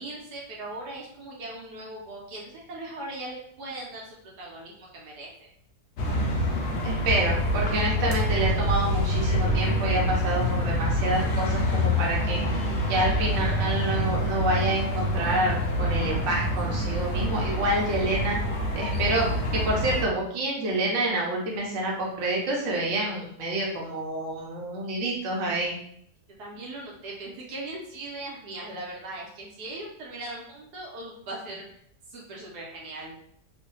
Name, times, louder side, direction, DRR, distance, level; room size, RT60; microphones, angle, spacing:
voice 1, 0.0-5.3 26.4-31.8 32.1-33.1, right 2 dB, 80° right, -3 dB, 1.3 m, -39 dB
sound 1, 6.0-20.1, left 1 dB, 70° left, 0.6 m, -26 dB
voice 2, 6.8-12.4 12.8-18.4 18.8-19.2 19.5-25.8, right 1 dB, 55° right, -3 dB, 1.0 m, -28 dB
3.0 x 2.1 x 3.0 m, 0.68 s
omnidirectional pair, 1.8 m